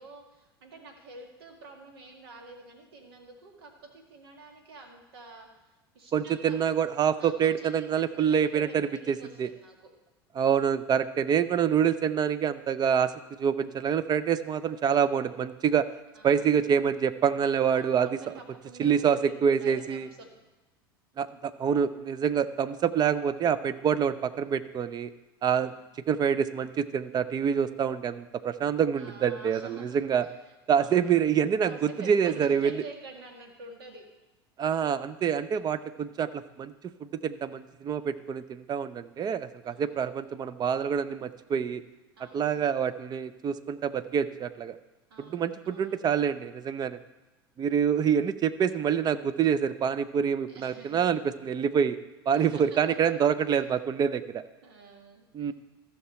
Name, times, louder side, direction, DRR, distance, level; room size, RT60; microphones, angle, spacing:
voice 1, 0.0-6.6 7.2-7.9 8.1-9.9 13.6-14.2 16.1-16.5 17.7-20.3 25.5-25.8 28.9-31.1 31.6-34.0 39.6-40.0 42.2-42.5 45.1-46.3 50.5-51.0 52.3-52.8 54.6-55.5, right 3 dB, 75° right, 2 dB, 1.9 m, -48 dB
voice 2, 6.1-9.5 10.4-13.1 13.4-15.8 16.2-18.2 18.8-20.1 21.2-25.1 25.4-25.7 26.1-30.3 30.7-32.8 34.6-41.8 42.3-44.8 45.2-47.0 47.6-52.0 52.3-54.4 55.3-55.5, right 7 dB, 30° right, 13 dB, 0.6 m, -26 dB
14.0 x 5.9 x 4.3 m, 1.0 s
hypercardioid pair, 80°, 13 cm